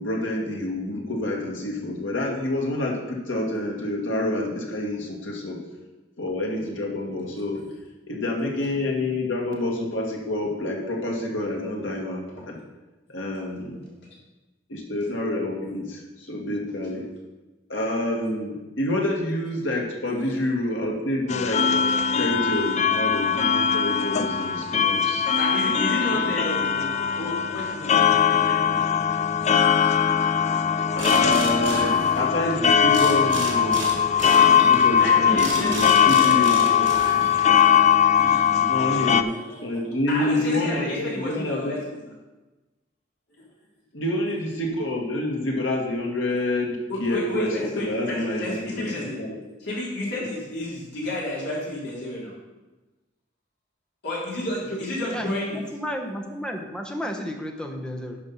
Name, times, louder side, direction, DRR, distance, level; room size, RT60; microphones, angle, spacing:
voice 1, 0.0-5.6 6.2-7.6 8.1-12.6 13.1-13.9 14.7-17.0 17.7-25.3 26.1-26.3 30.9-33.9 34.4-37.0 38.6-39.3 39.6-41.8 43.9-48.9 49.2-49.3, left 1 dB, 85° left, -1 dB, 2.0 m, -28 dB
sound 1, 21.3-39.2, left 8 dB, 35° left, 0.4 m, -20 dB
voice 2, 25.1-28.8 29.8-29.9 35.0-36.6 38.2-38.5 39.3-39.6 40.1-42.0 46.9-49.2 49.6-52.3 54.0-55.6, left 1 dB, 60° left, -5 dB, 3.6 m, -31 dB
sound 2, 31.0-32.5 32.9-37.6, right 3 dB, 75° right, 2.3 m, -33 dB
voice 3, 55.1-58.2, equal, 5° left, 2 dB, 1.0 m, -32 dB
10.5 x 5.5 x 5.6 m, 1.2 s
head